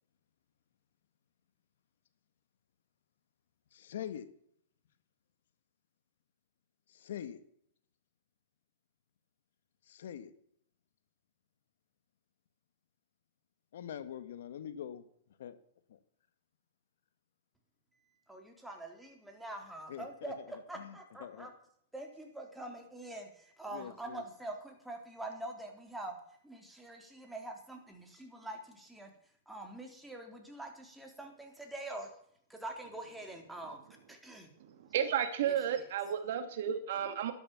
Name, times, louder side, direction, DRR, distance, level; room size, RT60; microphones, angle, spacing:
voice 1, 3.7-4.3 6.9-7.4 9.9-10.3 13.7-15.1 15.4-15.6 15.9-16.0 19.9-21.5 23.7-24.2, left 9 dB, 75° left, 12 dB, 1.8 m, -44 dB
voice 2, 18.3-21.5 21.9-26.2 26.4-29.1 29.5-32.1 32.5-33.8 34.1-34.5, right 2 dB, 5° right, 2 dB, 3.6 m, -45 dB
voice 3, 34.6-37.3, right 9 dB, 65° right, 8 dB, 2.5 m, -33 dB
12.5 x 12.0 x 7.2 m, 0.67 s
hypercardioid pair, 135°, 0 cm